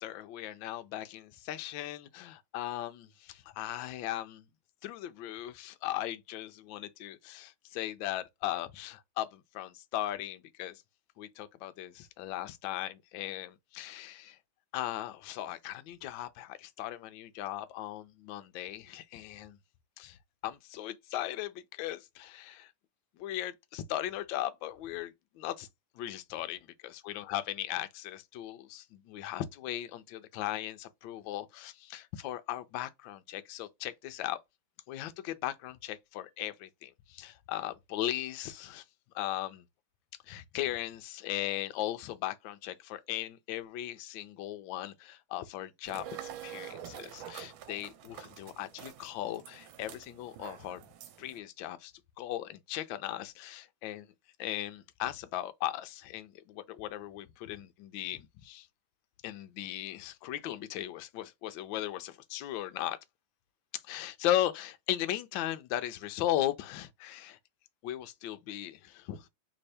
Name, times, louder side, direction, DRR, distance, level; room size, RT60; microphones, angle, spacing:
voice 1, 0.0-4.5 4.8-10.8 11.2-14.4 14.7-19.6 20.0-20.2 20.4-22.7 23.2-25.7 25.9-26.6 27.0-34.4 34.9-38.8 39.1-39.6 40.2-46.0 46.4-50.8 51.2-51.9 52.2-54.1 54.4-58.7 59.2-63.0 63.7-67.4 67.8-69.3, left 13 dB, 75° left, 1.3 m, -37 dB
sound 1, 45.9-51.4, right 10 dB, 85° right, 1.4 m, -47 dB
3.4 x 3.2 x 4.2 m
omnidirectional pair, 2.2 m